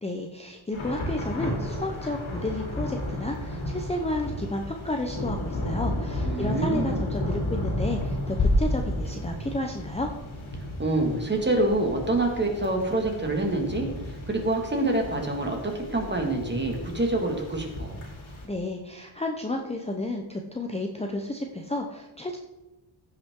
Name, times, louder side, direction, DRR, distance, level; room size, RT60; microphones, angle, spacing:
voice 1, 0.0-10.1 18.4-22.4, left 2 dB, 15° left, 2 dB, 0.7 m, -32 dB
Thunder / Rain, 0.7-18.4, left 1 dB, 80° left, 2.8 m, -34 dB
voice 2, 6.2-7.0 10.8-13.9 14.3-17.9, right 2 dB, 20° right, 2 dB, 1.9 m, -26 dB
sound 1, 8.4-10.2, left 1 dB, 40° left, 1.1 m, -26 dB
15.5 x 5.7 x 3.7 m, 1.1 s
wide cardioid pair, 135°, 47 cm